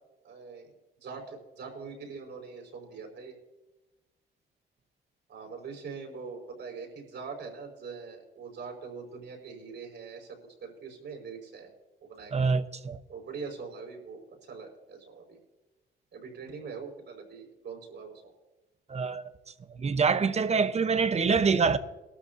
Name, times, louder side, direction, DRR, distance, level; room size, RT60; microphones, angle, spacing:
voice 1, 0.2-0.7 1.0-3.3 5.3-11.7 12.0-12.6 13.1-15.4 16.1-18.3 20.8-21.0, right 5 dB, 65° right, 5.1 m, -43 dB
voice 2, 12.3-13.0 18.9-19.3 19.7-21.8, right 5 dB, 35° right, 0.9 m, -25 dB
21.0 x 13.0 x 2.7 m
cardioid pair, 90°, 20 cm